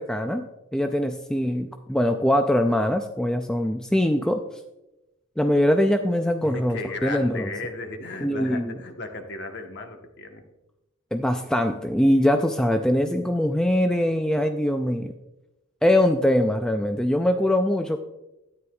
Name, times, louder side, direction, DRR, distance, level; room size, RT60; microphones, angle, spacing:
voice 1, 0.0-4.4 5.4-7.5 8.2-8.7 11.1-15.1 15.8-18.0, left 1 dB, 5° left, 6 dB, 0.3 m, -22 dB
voice 2, 6.4-10.4, left 2 dB, 55° left, 4 dB, 1.1 m, -35 dB
12.5 x 9.5 x 2.3 m, 0.94 s
head